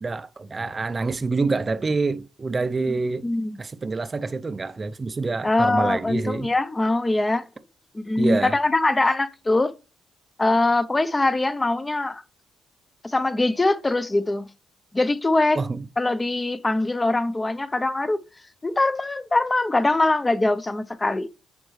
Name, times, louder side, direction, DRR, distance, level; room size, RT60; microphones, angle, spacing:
voice 1, 0.0-3.2 3.6-6.5 8.2-8.6 15.6-15.8, right 3 dB, 30° right, 0.5 m, -26 dB
voice 2, 3.2-3.6 5.4-7.4 7.9-9.7 10.4-12.2 13.0-14.5 14.9-15.6 16.0-18.2 18.6-21.3, left 2 dB, 20° left, 0.6 m, -22 dB
8.7 x 5.3 x 3.2 m
cardioid pair, 90°, 0 cm